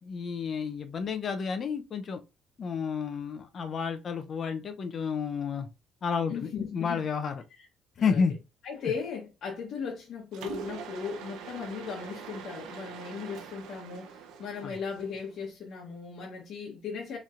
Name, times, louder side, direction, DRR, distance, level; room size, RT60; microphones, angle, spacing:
voice 1, 0.0-2.2 2.6-5.7 6.0-7.4 8.0-8.4 14.6-14.7, left 6 dB, 40° left, 0.5 m, -31 dB
voice 2, 6.3-7.0 7.5-7.7 8.0-8.2 8.6-17.2, left 6 dB, 55° left, 1.0 m, -37 dB
Mechanisms, 10.3-15.4, right 7 dB, 80° right, 0.6 m, -44 dB
4.2 x 3.1 x 2.4 m
cardioid pair, 135°, 0 cm